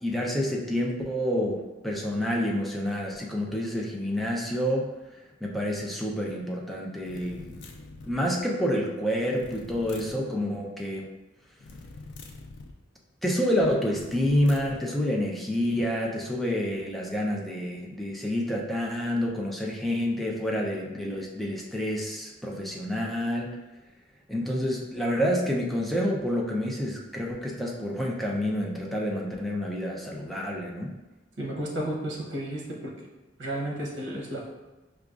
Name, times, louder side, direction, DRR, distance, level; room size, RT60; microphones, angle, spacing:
voice 1, 0.0-4.9 5.4-7.6 8.1-11.1 13.2-23.6 24.3-30.9, equal, ahead, -2 dB, 0.4 m, -28 dB
sound 1, 7.0-8.2 9.3-10.2 11.6-12.8 13.9-14.8, left 3 dB, 70° left, 0.4 m, -44 dB
voice 2, 31.4-32.9 33.4-34.5, right 1 dB, 85° right, -2 dB, 0.8 m, -32 dB
4.9 x 2.3 x 2.3 m, 1.1 s
head